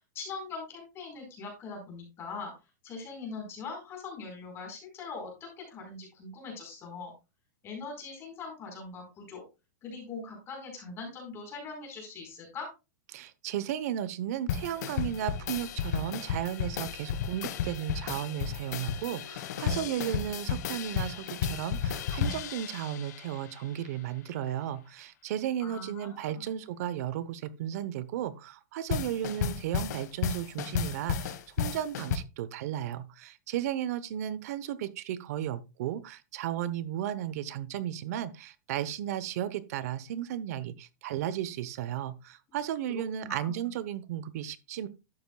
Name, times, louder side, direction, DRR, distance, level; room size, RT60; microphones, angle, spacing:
voice 1, 0.1-2.5 2.8-7.1 7.6-9.4 9.8-12.7 25.6-26.5 42.9-43.7, left 4 dB, 25° left, 4.4 m, -42 dB
voice 2, 13.1-44.9, right 11 dB, 55° right, 0.9 m, -34 dB
sound 1, 14.5-23.7 28.9-32.2, left 8 dB, 65° left, 1.3 m, -33 dB
12.0 x 8.1 x 2.3 m
supercardioid pair, 150°, 10 cm